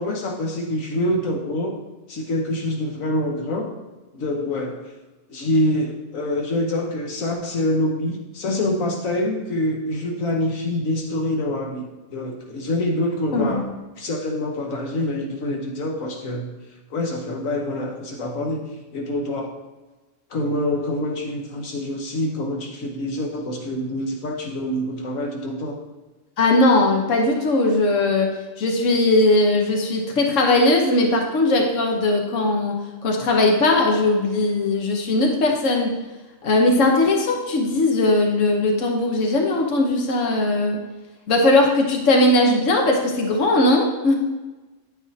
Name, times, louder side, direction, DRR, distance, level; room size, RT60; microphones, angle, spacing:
voice 1, 0.0-1.8 2.1-3.7 4.1-4.8 5.3-13.6 14.0-16.5 16.9-19.5 20.3-25.8, left 1 dB, 85° left, 1 dB, 1.5 m, -26 dB
voice 2, 13.3-13.7 26.4-35.9 36.4-40.8 41.3-44.1, left 2 dB, 70° left, 1 dB, 1.4 m, -19 dB
9.8 x 9.2 x 2.8 m, 1.2 s
omnidirectional pair, 1.4 m